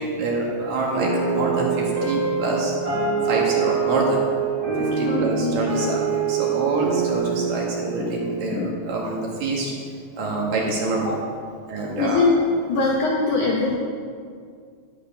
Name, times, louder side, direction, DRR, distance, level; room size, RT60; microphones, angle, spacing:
voice 1, 0.0-2.7 3.2-4.2 4.8-9.7 10.1-11.2 11.7-12.2, right 3 dB, 60° right, -2 dB, 2.7 m, -26 dB
sound 1, 1.0-9.5, right 6 dB, 35° right, 2.5 m, -25 dB
voice 2, 5.0-5.9 8.0-8.1 8.5-8.7 12.0-12.3 12.7-13.8, left 3 dB, 85° left, -2 dB, 1.7 m, -23 dB
11.5 x 9.7 x 5.2 m, 2.1 s
omnidirectional pair, 5.2 m